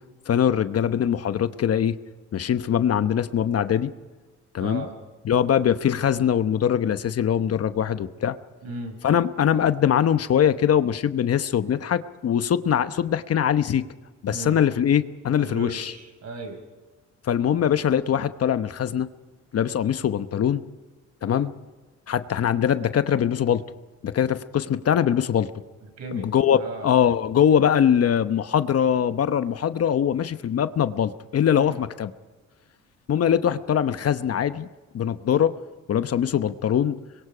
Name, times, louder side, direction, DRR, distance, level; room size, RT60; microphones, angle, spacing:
voice 1, 0.3-2.0 2.3-3.9 4.5-4.9 5.2-8.4 9.0-13.8 14.2-15.9 17.3-19.1 19.5-20.6 21.2-21.5 22.1-23.6 24.0-25.5 26.1-26.6 26.8-32.1 33.1-34.7 34.9-35.5 35.9-37.0, left 9 dB, 55° left, 11 dB, 1.0 m, -22 dB
voice 2, 4.6-4.9 8.6-9.0 14.3-14.6 15.4-16.6 26.0-26.9 31.5-31.8, right 3 dB, 55° right, 5 dB, 6.3 m, -36 dB
25.5 x 22.5 x 5.0 m, 1.3 s
cardioid pair, 90°, 30 cm